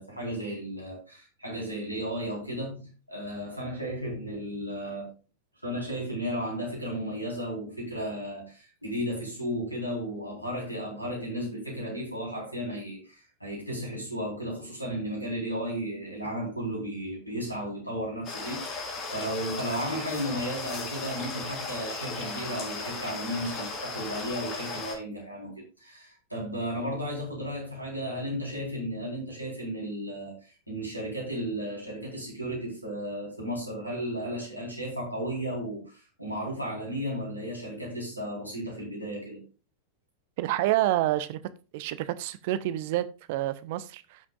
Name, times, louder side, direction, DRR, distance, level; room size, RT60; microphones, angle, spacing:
voice 1, 0.0-5.1 5.6-39.4, equal, 90° right, 4.0 m, -34 dB
sound 1, 18.2-24.9, left 3 dB, 35° left, 3.8 m, -36 dB
voice 2, 40.4-41.4 41.7-44.2, right 14 dB, 50° right, 0.7 m, -28 dB
16.0 x 6.0 x 2.4 m
figure-of-eight pair, 90°, 0 cm